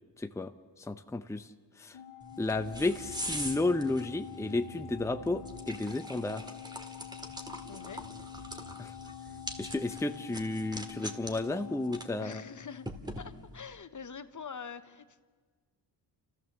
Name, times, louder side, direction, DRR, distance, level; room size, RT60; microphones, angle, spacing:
voice 1, 0.2-0.5 0.8-1.5 1.8-2.0 2.4-6.4 8.8-8.9 9.6-12.4, left 2 dB, 5° left, 8 dB, 0.8 m, -32 dB
Organ, 1.9-13.2, left 11 dB, 75° left, 0.9 m, -47 dB
sound 1, 2.2-13.7, equal, 10° right, 1.9 m, -44 dB
Bass guitar, 2.5-6.1 6.7-7.3 7.6-9.7, right 4 dB, 85° right, 3.0 m, -52 dB
voice 2, 7.7-8.0 12.2-12.9 13.2-15.2, left 6 dB, 40° left, 11 dB, 1.0 m, -45 dB
29.5 x 14.5 x 7.2 m, 1.6 s
cardioid pair, 70°, 46 cm